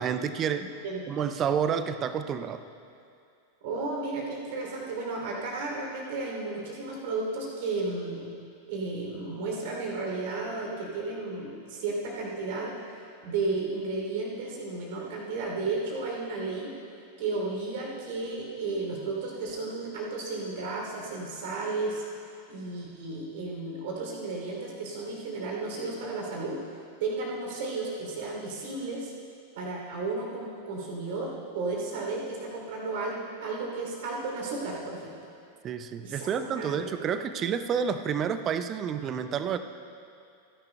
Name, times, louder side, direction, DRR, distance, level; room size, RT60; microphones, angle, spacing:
voice 1, 0.0-0.7 1.1-2.6 35.6-39.6, right 7 dB, 30° right, 10 dB, 0.6 m, -29 dB
voice 2, 0.6-1.0 3.6-8.3 8.7-16.7 17.2-22.0 22.5-26.6 27.0-29.1 29.6-35.1 36.0-37.1, right 3 dB, 50° right, -2 dB, 3.0 m, -33 dB
29.5 x 10.5 x 2.2 m, 2.5 s
figure-of-eight pair, 90°, 0 cm